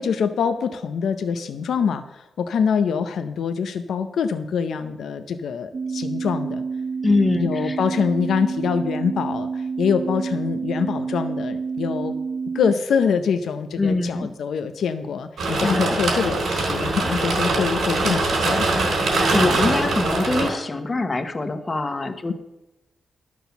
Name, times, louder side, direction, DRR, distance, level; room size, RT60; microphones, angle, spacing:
voice 1, 0.0-6.6 7.3-12.1 12.5-18.7, left 6 dB, 85° left, 9 dB, 0.6 m, -24 dB
sound 1, 5.7-12.8, right 5 dB, 40° right, 0.4 m, -28 dB
voice 2, 7.0-7.8 13.8-14.3 15.6-15.9 19.0-22.3, left 3 dB, 25° left, 9 dB, 1.0 m, -24 dB
sound 2, 15.4-20.5, right 2 dB, 80° right, 3.9 m, -22 dB
12.0 x 6.2 x 6.9 m, 0.97 s
wide cardioid pair, 145°, 0 cm